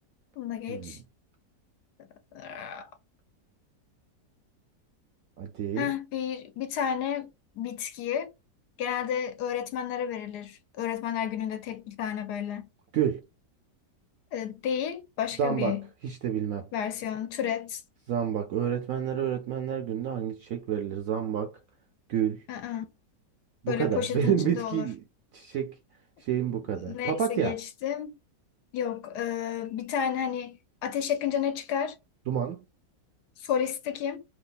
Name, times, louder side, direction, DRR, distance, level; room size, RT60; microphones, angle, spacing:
voice 1, 0.4-1.0 2.0-2.9 5.8-7.3 7.6-8.3 8.8-12.7 14.3-15.8 16.7-17.8 22.5-22.9 23.7-24.9 26.9-28.1 28.7-32.0 33.4-34.2, left 8 dB, 75° left, 1.0 m, -31 dB
voice 2, 5.4-5.9 12.9-13.2 15.4-15.8 16.0-16.7 18.1-21.6 22.1-22.4 23.6-25.0 25.3-25.8 26.2-27.6 32.3-32.6, right 9 dB, 70° right, 0.8 m, -29 dB
3.0 x 2.4 x 3.9 m
omnidirectional pair, 1.9 m